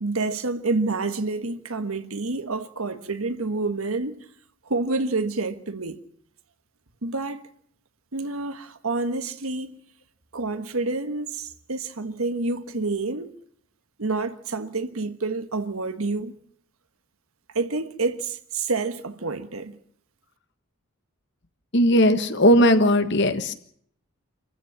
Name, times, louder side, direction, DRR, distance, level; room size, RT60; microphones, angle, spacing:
voice 1, 0.0-4.2 4.6-6.0 7.0-7.4 8.1-9.8 10.3-13.3 14.0-16.3 17.5-19.8, right 3 dB, 80° right, 1.4 m, -28 dB
voice 2, 21.7-23.5, equal, 55° left, 1.5 m, -18 dB
26.0 x 15.0 x 7.2 m
head